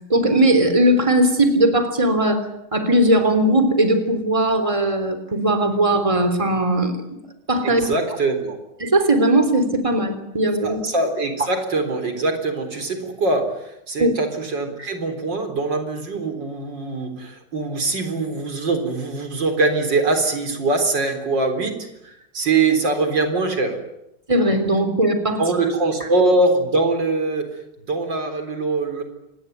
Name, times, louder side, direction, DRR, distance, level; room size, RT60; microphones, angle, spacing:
voice 1, 0.1-2.4 2.7-7.2 7.5-7.9 8.8-10.8 14.0-14.1 24.3-25.4, right 1 dB, 15° right, 8 dB, 3.5 m, -18 dB
voice 2, 7.6-8.6 10.6-23.8 25.4-27.5 27.9-29.0, right 3 dB, 85° right, 6 dB, 4.6 m, -22 dB
26.5 x 20.5 x 9.4 m, 0.85 s
omnidirectional pair, 1.9 m